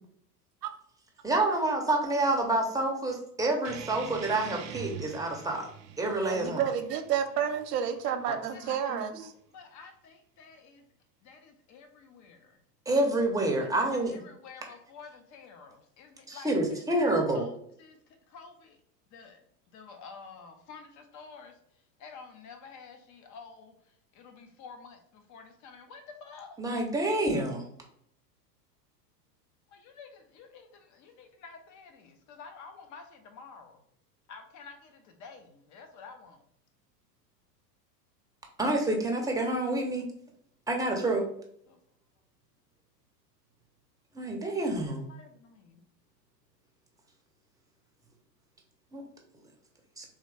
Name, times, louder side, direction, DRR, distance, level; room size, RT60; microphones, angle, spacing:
voice 1, 1.2-5.7 6.0-6.6 8.9-9.0 12.9-14.1 16.3-17.4 26.6-27.6 38.6-40.1 40.7-41.2 44.1-45.1 48.9-49.0 50.0-50.1, right 2 dB, 5° right, 0 dB, 0.9 m, -28 dB
sound 1, 3.6-8.7, right 9 dB, 35° right, 0.5 m, -45 dB
voice 2, 6.2-9.3, right 8 dB, 70° right, 7 dB, 0.9 m, -30 dB
voice 3, 8.0-8.9 9.2-10.8 11.2-12.6 13.6-17.5 17.8-18.0 18.3-18.8 19.1-19.4 19.7-21.5 22.0-23.7 24.1-26.5 29.7-33.8 34.3-36.4 41.7-41.8 45.1-45.8, left 5 dB, 35° left, 6 dB, 0.9 m, -50 dB
4.0 x 3.1 x 3.3 m, 0.70 s
hypercardioid pair, 100°, 50 cm